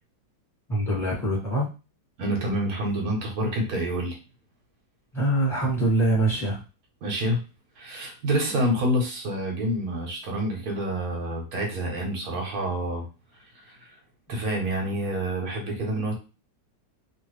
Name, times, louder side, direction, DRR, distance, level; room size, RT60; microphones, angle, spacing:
voice 1, 0.7-1.7 5.1-6.6, right 1 dB, ahead, -5 dB, 1.3 m, -24 dB
voice 2, 2.2-4.2 7.0-7.4 7.8-13.1 13.7-13.8 14.3-16.2, right 1 dB, 60° right, 1 dB, 1.3 m, -27 dB
3.1 x 2.6 x 3.1 m, 0.31 s
omnidirectional pair, 2.0 m